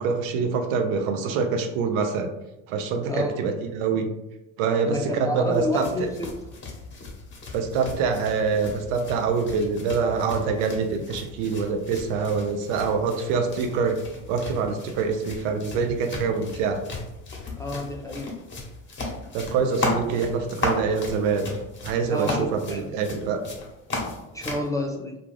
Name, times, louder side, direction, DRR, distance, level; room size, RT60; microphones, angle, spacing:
voice 1, 0.0-2.3 2.7-4.1 4.6-6.1 7.5-14.0 14.3-16.8 19.3-21.5 21.8-23.5, right 5 dB, 75° right, 6 dB, 0.6 m, -25 dB
voice 2, 3.1-3.4 4.9-6.3 17.6-18.3 22.1-22.9 24.3-25.2, left 1 dB, 10° left, -1 dB, 0.3 m, -29 dB
sound 1, 5.5-24.7, left 2 dB, 30° left, 1.0 m, -35 dB
2.4 x 2.3 x 3.2 m, 0.93 s
hypercardioid pair, 75°, 39 cm